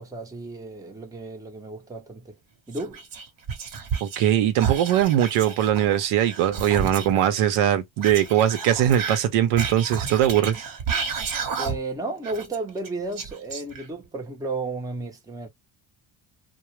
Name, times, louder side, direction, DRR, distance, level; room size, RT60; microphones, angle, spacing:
voice 1, 0.0-2.4 2.7-3.0 11.6-15.5, right 2 dB, 5° right, 0.6 m, -33 dB
Whispering, 2.7-4.3 4.6-7.2 8.0-12.0 12.2-14.1, right 6 dB, 40° right, 0.8 m, -31 dB
voice 2, 4.0-10.6, right 11 dB, 80° right, 0.7 m, -21 dB
2.3 x 2.0 x 2.9 m
cardioid pair, 115°, 49 cm